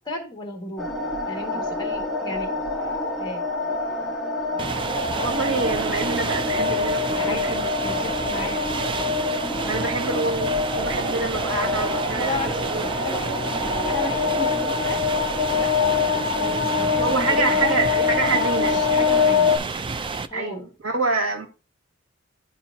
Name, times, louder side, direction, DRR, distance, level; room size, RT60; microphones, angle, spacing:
voice 1, 0.0-0.9 1.3-2.5 3.2-3.4 7.1-8.8 12.1-12.6 13.0-13.3 13.9-15.0 15.5-18.3 18.7-19.5 20.3-20.7, left 2 dB, 20° left, 1.7 m, -34 dB
sound 1, 0.8-19.6, left 4 dB, ahead, 1.3 m, -25 dB
sound 2, 4.6-20.3, right 4 dB, 25° right, 0.3 m, -30 dB
voice 2, 5.2-7.7 9.7-12.4 12.7-12.9 17.0-18.8 20.3-21.5, right 3 dB, 85° right, 1.8 m, -26 dB
11.5 x 4.3 x 2.7 m
head